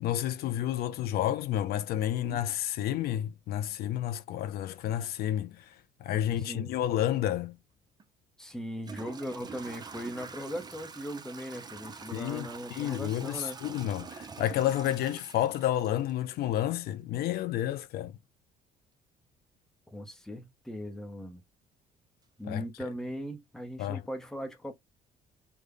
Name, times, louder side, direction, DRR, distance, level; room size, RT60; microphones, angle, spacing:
voice 1, 0.0-5.7 6.0-7.6 12.1-18.1 22.5-22.6 23.8-24.0, left 12 dB, 65° left, 0.4 m, -30 dB
voice 2, 6.4-6.7 8.4-13.6 19.9-21.4 22.4-24.7, equal, 5° left, 0.8 m, -39 dB
Toilet flush / Trickle dribble, 8.0-8.1 8.8-16.6, right 5 dB, 25° right, 0.5 m, -46 dB
3.3 x 2.1 x 3.7 m
cardioid pair, 110°, 17 cm